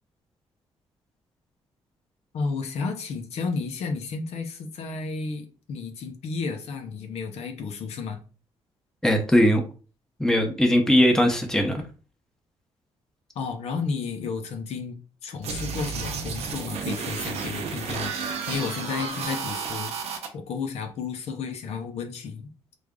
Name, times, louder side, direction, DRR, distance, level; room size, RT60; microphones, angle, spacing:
voice 1, 2.3-8.2 13.3-22.5, left 5 dB, 75° left, 0.7 m, -32 dB
voice 2, 9.0-9.6 10.2-11.8, equal, 5° left, 0.8 m, -20 dB
sound 1, 15.4-20.3, right 5 dB, 75° right, 0.7 m, -32 dB
3.3 x 2.6 x 3.6 m
cardioid pair, 100°, 11 cm